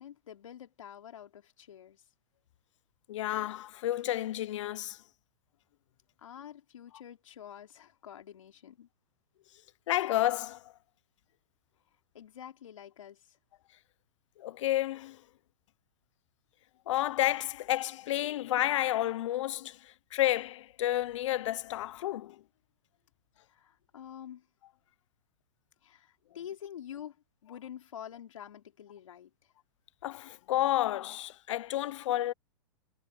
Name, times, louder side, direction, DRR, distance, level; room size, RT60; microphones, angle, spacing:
voice 1, 0.0-2.0 6.2-8.9 12.1-13.4 23.5-24.5 25.8-27.2 27.4-29.3, left 10 dB, 85° left, 4.3 m, -47 dB
voice 2, 3.1-5.0 9.9-10.7 14.4-15.2 16.9-22.4 30.0-32.3, left 14 dB, 70° left, 0.8 m, -31 dB
hypercardioid pair, 130°, 16 cm